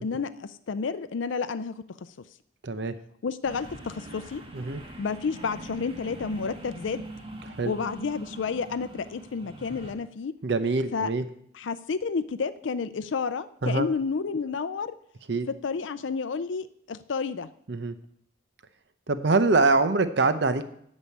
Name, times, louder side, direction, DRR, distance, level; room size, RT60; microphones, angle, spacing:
voice 1, 0.0-2.1 3.2-4.4 5.0-7.1 7.7-10.3 10.9-11.1 11.5-15.0 15.5-17.5, left 5 dB, 75° left, 13 dB, 0.4 m, -30 dB
voice 2, 2.6-2.9 4.5-4.8 7.5-7.7 10.4-11.2 13.6-13.9 15.3-15.5 17.7-18.0 19.1-20.7, right 3 dB, 60° right, 11 dB, 0.7 m, -24 dB
sound 1, 3.4-9.9, right 1 dB, 30° right, 1.4 m, -43 dB
8.7 x 6.3 x 8.4 m, 0.69 s
head